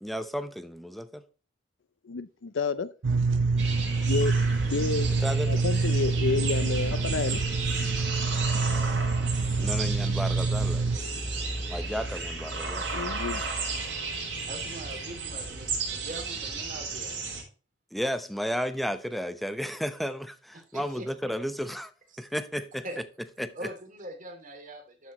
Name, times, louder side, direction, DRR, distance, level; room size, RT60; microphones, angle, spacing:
voice 1, 0.0-1.2 5.2-5.6 9.6-11.0 11.7-12.8 17.9-21.9 22.2-22.8 23.4-23.5, equal, ahead, 0.8 m, -33 dB
voice 2, 2.0-2.9 4.1-4.4 4.7-5.1 5.5-7.4 12.9-13.4, left 4 dB, 80° left, 0.5 m, -30 dB
sound 1, 3.0-11.0, right 3 dB, 90° right, 0.7 m, -26 dB
sound 2, 3.6-17.4, right 4 dB, 70° right, 4.1 m, -34 dB
voice 3, 14.4-17.2 20.5-21.1 22.1-22.2 22.8-23.0 23.5-25.1, right 1 dB, 45° right, 2.8 m, -42 dB
12.0 x 6.2 x 3.0 m
head